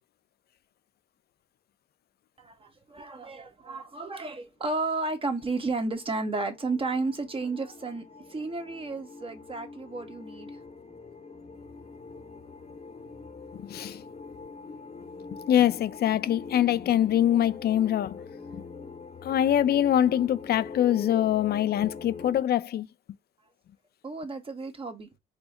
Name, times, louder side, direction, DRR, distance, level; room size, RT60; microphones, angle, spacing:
voice 1, 2.4-10.5 24.0-25.1, right 3 dB, 25° right, 1.1 m, -32 dB
sound 1, 4.4-22.4, left 4 dB, 35° left, 0.9 m, -44 dB
voice 2, 13.6-14.0 15.5-18.2 18.5-18.6 19.2-22.9, left 11 dB, 55° left, 0.4 m, -24 dB
4.9 x 2.0 x 3.7 m
cardioid pair, 90°, 20 cm